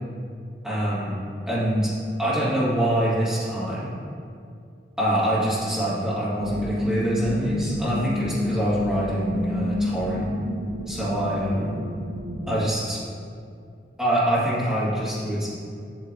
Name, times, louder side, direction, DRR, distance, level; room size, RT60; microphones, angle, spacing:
voice 1, 0.6-1.1 1.5-1.9 2.2-3.9 5.0-10.3 10.9-11.8 12.5-13.0 14.0-15.5, right 1 dB, 5° right, -10 dB, 1.8 m, -25 dB
sound 1, 6.4-12.7, left 1 dB, 60° right, 0.5 m, -29 dB
8.0 x 7.0 x 2.6 m, 2.4 s
head